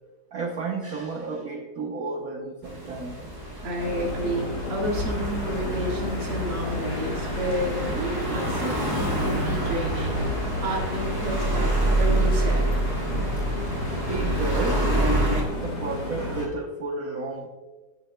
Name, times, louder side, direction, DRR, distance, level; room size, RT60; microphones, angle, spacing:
voice 1, 0.3-3.2 3.6-4.0 6.6-6.9 13.3-17.5, right 3 dB, 50° right, 1 dB, 1.2 m, -33 dB
sound 1, 2.6-15.4, right 1 dB, 10° right, 2.5 m, -27 dB
voice 2, 3.6-10.2 10.6-11.7 12.0-12.6, right 1 dB, 80° right, -2 dB, 2.9 m, -30 dB
sound 2, 3.8-16.5, left 2 dB, 50° left, 2.6 m, -32 dB
17.0 x 8.2 x 2.3 m, 1.3 s
omnidirectional pair, 2.4 m